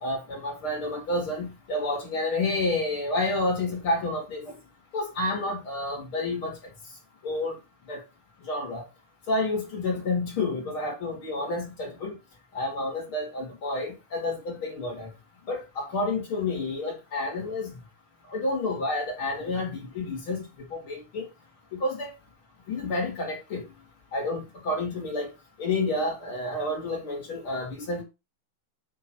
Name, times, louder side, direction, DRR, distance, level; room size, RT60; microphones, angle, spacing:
voice 1, 0.0-4.4 4.9-6.5 7.2-7.6 7.9-8.0 8.5-8.8 9.3-12.1 12.5-15.1 15.5-17.7 18.3-20.4 20.7-21.3 21.7-22.1 22.7-23.6 24.1-25.3 25.6-28.0, left 2 dB, 45° left, -1 dB, 1.8 m, -29 dB
8.4 x 2.9 x 6.0 m, 0.26 s
omnidirectional pair, 4.7 m